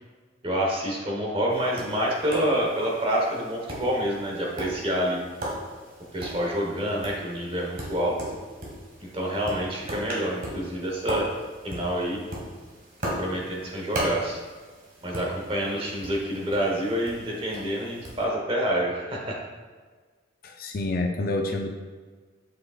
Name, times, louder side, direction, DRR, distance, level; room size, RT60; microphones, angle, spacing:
voice 1, 0.4-5.2 6.1-8.2 9.0-11.3 11.6-12.2 13.0-14.4 15.0-19.4, equal, 25° right, -2 dB, 1.1 m, -27 dB
Tap, 1.5-18.2, equal, 45° right, 1.6 m, -38 dB
voice 2, 20.4-21.7, left 2 dB, 45° left, 3 dB, 0.5 m, -28 dB
7.6 x 6.1 x 2.5 m, 1.5 s
head